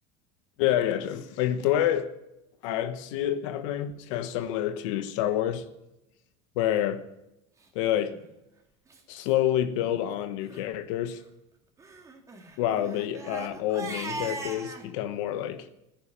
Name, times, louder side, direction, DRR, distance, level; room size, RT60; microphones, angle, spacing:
voice 1, 0.6-2.1 2.6-5.6 6.6-7.1 7.7-8.2 9.1-11.2 12.6-15.7, left 11 dB, 80° left, 1.3 m, -28 dB
Crying sobbing, 8.0-8.2 8.9-9.0 9.3-9.4 9.7-9.9 10.4-10.6 11.8-14.9, right 3 dB, 20° right, 2.6 m, -39 dB
15.5 x 10.5 x 8.9 m
supercardioid pair, 130°, 16 cm